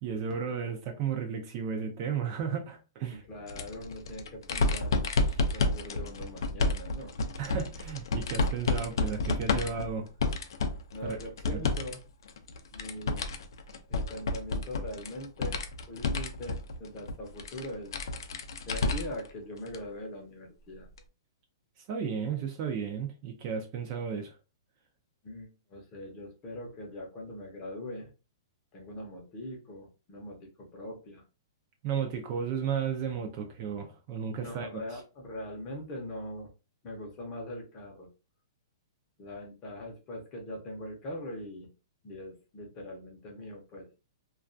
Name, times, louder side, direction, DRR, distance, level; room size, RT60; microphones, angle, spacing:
voice 1, 0.0-3.2 5.3-5.4 7.4-10.1 11.0-11.2 21.9-24.4 31.8-34.7, right 7 dB, 30° right, 0.4 m, -34 dB
voice 2, 3.1-5.0 5.5-7.1 10.9-12.0 12.7-13.2 13.9-15.6 15.9-17.9 18.7-20.9 25.2-28.1 28.7-31.2 34.4-36.5 36.8-38.1 39.2-41.7 42.0-43.9, left 1 dB, 25° left, 0.7 m, -41 dB
sound 1, 3.5-11.9 12.3-19.3 19.7-19.8 21.0-21.1, left 3 dB, 65° left, 0.4 m, -31 dB
2.2 x 2.2 x 2.5 m
hypercardioid pair, 165°, 2 cm